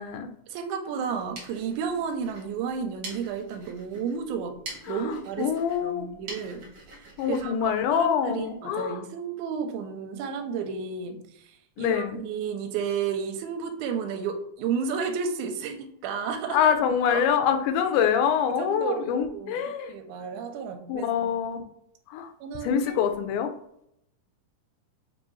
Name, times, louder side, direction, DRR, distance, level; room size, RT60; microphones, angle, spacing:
voice 1, 0.5-4.6 4.9-5.5 5.8-6.6 7.3-16.6 17.1-17.2 18.6-19.6 19.9-21.3 22.4-23.0, right 6 dB, 80° right, 5 dB, 1.9 m, -32 dB
sound 1, 1.0-8.5, right 2 dB, 55° right, 1.7 m, -46 dB
voice 2, 4.9-6.1 7.2-9.0 11.8-12.2 16.5-19.9 20.9-21.6 22.1-22.3 22.6-23.5, left 8 dB, 90° left, 7 dB, 2.1 m, -25 dB
5.3 x 2.6 x 3.1 m, 0.76 s
omnidirectional pair, 3.6 m